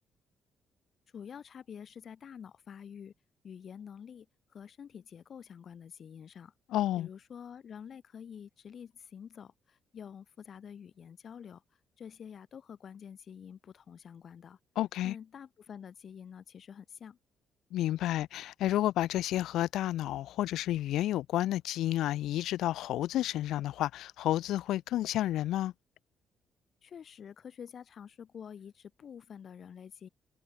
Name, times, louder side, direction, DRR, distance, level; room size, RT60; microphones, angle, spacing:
voice 1, 1.1-3.1 3.4-6.5 7.0-11.6 12.0-14.6 15.0-17.2 26.8-30.1, left 7 dB, 55° left, 3.0 m, -48 dB
voice 2, 6.7-7.1 14.8-15.1 17.7-25.7, left 13 dB, 85° left, 1.0 m, -31 dB
cardioid pair, 90°, 0 cm